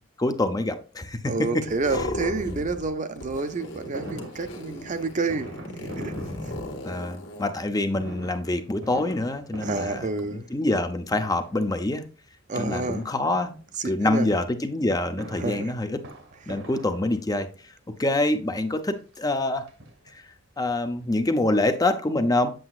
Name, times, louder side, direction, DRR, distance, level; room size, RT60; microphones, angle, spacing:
voice 1, 0.2-1.3 2.5-2.6 6.8-10.1 10.5-12.0 12.6-13.5 13.8-16.0 16.5-17.5 18.0-19.7 20.6-22.5, left 2 dB, 20° left, 0.6 m, -25 dB
voice 2, 1.3-6.1 9.6-10.5 12.5-13.1 13.8-14.3 15.4-15.7 16.5-16.6, right 3 dB, 40° right, 0.6 m, -29 dB
sound 1, 1.7-2.9 3.2-7.5, left 1 dB, 65° left, 1.6 m, -35 dB
Fireworks, 3.9-7.1 7.9-10.8 11.1-11.7 12.7-13.7 14.9-17.5 18.3-18.4 18.7-18.8 19.1-20.4 20.7-20.8 21.0-21.1, equal, 80° right, 1.5 m, -42 dB
7.8 x 7.0 x 2.4 m
head